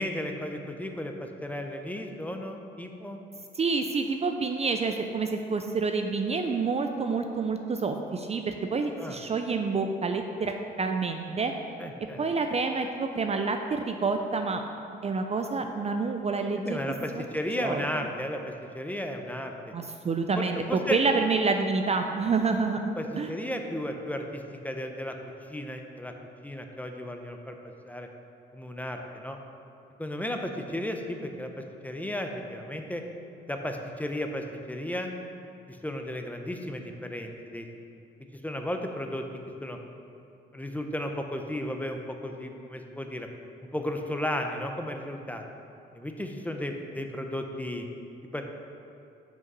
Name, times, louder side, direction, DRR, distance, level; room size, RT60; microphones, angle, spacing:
voice 1, 0.0-3.2 9.0-9.2 11.8-12.2 16.6-19.5 20.4-21.0 23.0-25.2 25.5-26.1 26.4-28.1 28.5-29.4 30.0-33.0 33.5-35.1 35.7-37.7 38.4-39.2 39.6-39.8 40.5-43.3 43.7-45.4 45.9-47.9 48.3-48.4, left 1 dB, 10° left, 4 dB, 0.6 m, -34 dB
voice 2, 3.5-11.5 12.2-14.6 15.0-17.2 17.6-18.1 19.7-23.3, right 4 dB, 35° right, 5 dB, 0.4 m, -28 dB
5.8 x 5.4 x 5.4 m, 2.6 s
cardioid pair, 90°, 20 cm